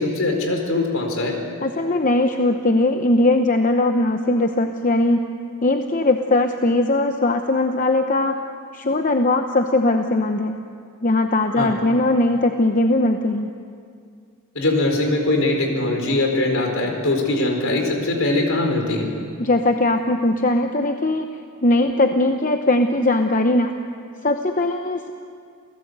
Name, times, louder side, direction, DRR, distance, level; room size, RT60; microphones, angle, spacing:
voice 1, 0.0-1.4 11.6-11.7 14.5-19.1, left 2 dB, 65° left, 2 dB, 4.4 m, -21 dB
voice 2, 1.6-5.3 5.6-8.4 8.7-10.6 11.0-13.5 19.4-21.3 21.6-23.7 24.2-25.1, left 2 dB, 35° left, 5 dB, 0.8 m, -19 dB
28.5 x 17.0 x 8.1 m, 2.2 s
head